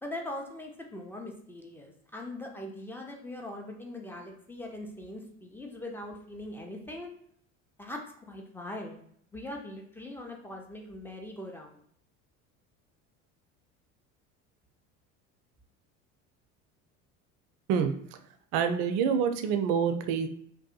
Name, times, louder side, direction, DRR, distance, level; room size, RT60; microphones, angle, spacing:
voice 1, 0.0-7.1 7.8-8.9 9.3-11.8, left 1 dB, 5° left, 1 dB, 0.4 m, -41 dB
voice 2, 18.5-20.3, right 7 dB, 60° right, 7 dB, 0.5 m, -26 dB
2.6 x 2.2 x 2.4 m, 0.65 s
hypercardioid pair, 75°, 40 cm